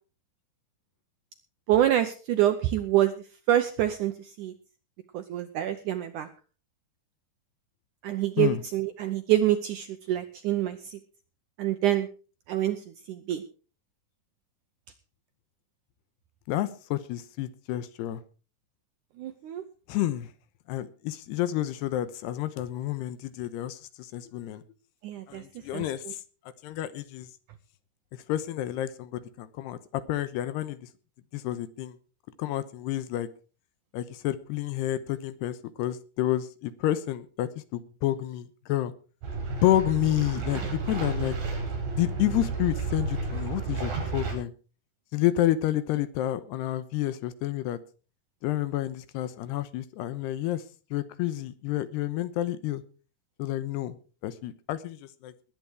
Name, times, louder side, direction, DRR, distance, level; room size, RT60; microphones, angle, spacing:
voice 1, 1.7-3.1 3.5-4.1 4.4-4.5 5.1-6.3 8.0-10.8 11.6-12.1 12.5-12.8 13.1-13.4 19.2-19.6 25.0-25.4 25.7-25.8, right 12 dB, 80° right, 9 dB, 1.8 m, -26 dB
voice 2, 16.5-18.2 19.9-20.3 20.7-24.6 25.3-26.2 26.6-27.3 28.1-30.9 31.3-32.0 32.4-33.3 33.9-38.9 39.5-41.4 41.9-44.5 45.1-47.8 48.4-50.6 50.9-52.8 53.4-55.3, left 13 dB, 90° left, 14 dB, 3.1 m, -29 dB
sound 1, 39.2-44.3, right 4 dB, 65° right, 6.7 m, -32 dB
20.0 x 9.5 x 4.7 m, 0.36 s
omnidirectional pair, 4.6 m